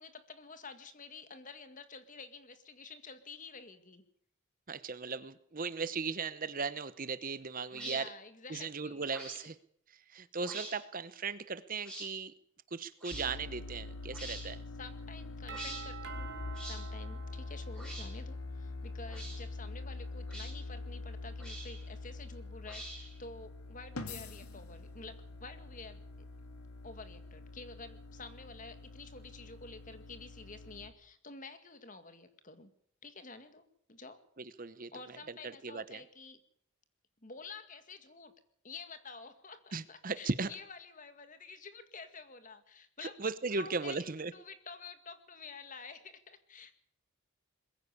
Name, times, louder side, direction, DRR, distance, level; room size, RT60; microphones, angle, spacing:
voice 1, 0.0-4.0 7.7-9.1 14.8-16.3 16.6-26.0 26.8-32.7 33.0-34.2 34.9-36.4 37.2-38.3 38.6-43.2 43.5-46.8, left 4 dB, 35° left, 10 dB, 2.0 m, -50 dB
voice 2, 4.7-8.1 8.5-9.5 9.9-12.3 12.7-14.6 34.4-35.2 35.4-36.0 39.7-40.5 43.0-44.3, right 4 dB, 40° right, 14 dB, 0.9 m, -37 dB
sound 1, 7.7-8.0 9.1-9.4 10.4-10.7 11.8-12.1 13.0-13.3 14.1-14.5 15.5-15.8 16.5-16.8 17.7-18.1 19.1-19.4 20.3-20.5 21.4-21.8 22.7-23.2, right 1 dB, 5° left, 5.6 m, -45 dB
sound 2, 13.1-30.9, left 3 dB, 80° left, 2.5 m, -44 dB
Doorbell, 15.5-18.3, right 7 dB, 55° right, 2.8 m, -48 dB
21.5 x 15.5 x 8.3 m, 0.66 s
head